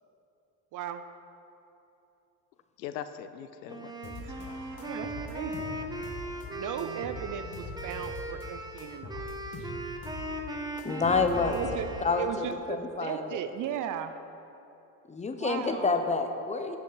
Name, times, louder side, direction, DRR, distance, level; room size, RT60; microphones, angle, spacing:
voice 1, 0.7-1.0 4.8-5.7 6.5-9.3 9.6-9.7 11.5-11.9 12.2-14.1 15.4-16.1, right 9 dB, 40° right, 10 dB, 0.5 m, -36 dB
voice 2, 2.8-4.9, left 9 dB, 80° left, 11 dB, 0.6 m, -42 dB
Wind instrument woodwind instrument, 3.7-12.4, right 1 dB, 10° right, 0.9 m, -39 dB
sound 1, 4.0-4.5 4.8-6.5 6.8-8.5 8.8-10.3 10.5-12.0, left 2 dB, 35° left, 1.8 m, -42 dB
sound 2, 4.2-10.6, right 4 dB, 75° right, 1.3 m, -53 dB
voice 3, 10.8-11.6 12.0-13.4 15.1-16.8, left 4 dB, 15° left, 6 dB, 0.6 m, -28 dB
13.5 x 5.1 x 4.0 m, 2.9 s
hypercardioid pair, 65°, 49 cm